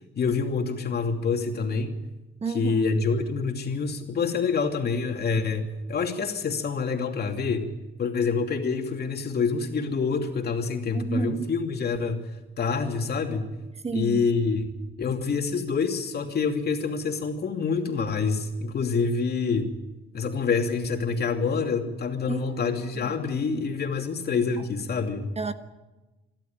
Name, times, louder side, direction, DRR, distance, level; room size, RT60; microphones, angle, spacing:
voice 1, 0.1-1.9 2.5-7.7 8.0-13.4 13.9-14.7 15.0-19.7 20.1-25.3, left 5 dB, 55° left, 2.8 m, -27 dB
voice 2, 2.4-2.9 10.9-11.5 13.8-14.3 22.2-23.1 24.6-24.7 25.4-25.5, right 4 dB, 30° right, 1.2 m, -31 dB
26.0 x 12.0 x 8.8 m
cardioid pair, 90°, 20 cm